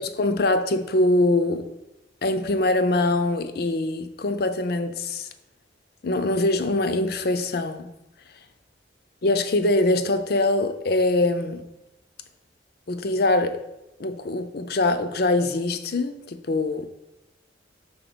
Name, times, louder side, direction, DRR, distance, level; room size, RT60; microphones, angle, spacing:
voice 1, 0.0-1.7 2.2-5.3 6.0-7.9 9.2-11.6 12.9-13.6 14.0-16.9, left 2 dB, 55° left, 9 dB, 0.5 m, -23 dB
5.1 x 4.3 x 6.0 m, 0.92 s
head